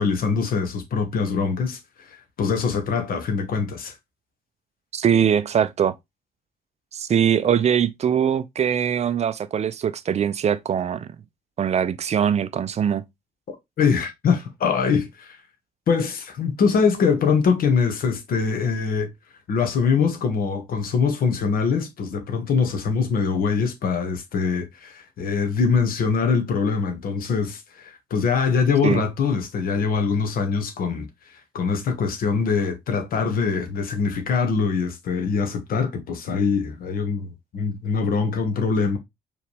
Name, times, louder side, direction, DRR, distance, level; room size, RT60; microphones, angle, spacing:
voice 1, 0.0-1.8 2.1-3.9 13.8-15.4 15.9-19.1 19.5-31.1 31.5-39.0, left 5 dB, 50° left, 1.2 m, -23 dB
voice 2, 4.9-5.9 6.9-11.1 11.6-13.0 28.8-29.0, right 8 dB, 35° right, 0.5 m, -22 dB
4.7 x 3.2 x 3.1 m
figure-of-eight pair, 45°, 18 cm